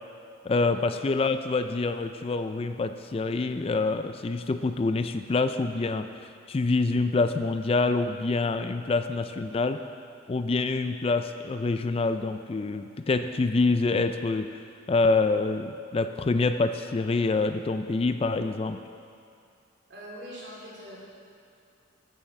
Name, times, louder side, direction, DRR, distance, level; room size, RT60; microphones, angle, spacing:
voice 1, 0.5-6.1 6.5-9.8 10.3-14.5 14.9-18.8, left 3 dB, 30° left, 9 dB, 0.3 m, -26 dB
voice 2, 19.9-21.0, equal, 60° right, -5 dB, 3.5 m, -43 dB
14.0 x 7.3 x 5.9 m, 2.5 s
head